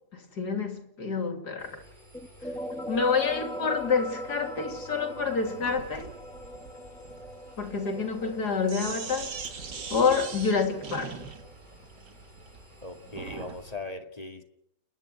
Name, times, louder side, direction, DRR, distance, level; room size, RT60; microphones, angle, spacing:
voice 1, 0.1-1.8 2.9-6.1 7.6-9.3 9.9-11.2, left 5 dB, 75° left, 3.4 m, -28 dB
Engine, 1.6-13.7, equal, 25° right, 7.0 m, -53 dB
sound 1, 2.1-11.5, left 1 dB, 5° left, 2.4 m, -41 dB
Sink (filling or washing), 5.6-13.6, right 5 dB, 85° right, 2.5 m, -41 dB
voice 2, 12.8-14.4, left 2 dB, 25° left, 2.2 m, -39 dB
29.5 x 11.0 x 9.1 m
omnidirectional pair, 1.8 m